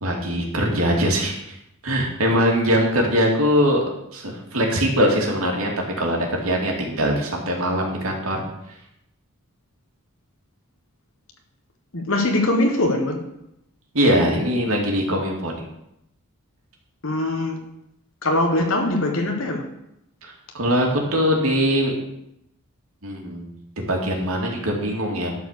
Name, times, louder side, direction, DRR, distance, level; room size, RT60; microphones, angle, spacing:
voice 1, 0.0-1.6 1.8-3.8 4.1-5.7 6.0-8.4 13.9-15.6 20.2-21.9 23.0-23.5 23.8-25.3, equal, 75° right, 2.7 m, -22 dB
voice 2, 11.9-13.3 17.0-17.6 18.2-19.7, left 1 dB, 70° left, 1.5 m, -22 dB
12.0 x 4.8 x 6.8 m
head